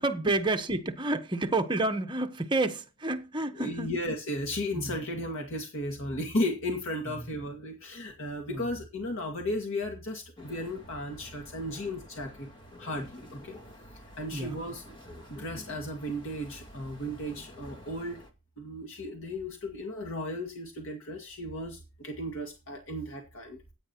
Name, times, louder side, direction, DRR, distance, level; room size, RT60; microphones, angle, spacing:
voice 1, 0.0-3.9 4.7-5.0 7.1-7.2 8.5-8.7 14.3-14.6, right 2 dB, 20° right, 1.1 m, -30 dB
voice 2, 3.6-12.5 12.8-13.6 14.2-14.8 15.3-18.2 18.6-23.6, left 1 dB, 60° left, 2.1 m, -35 dB
sound 1, 10.4-18.3, left 1 dB, 20° left, 2.1 m, -50 dB
15.0 x 9.2 x 3.0 m
head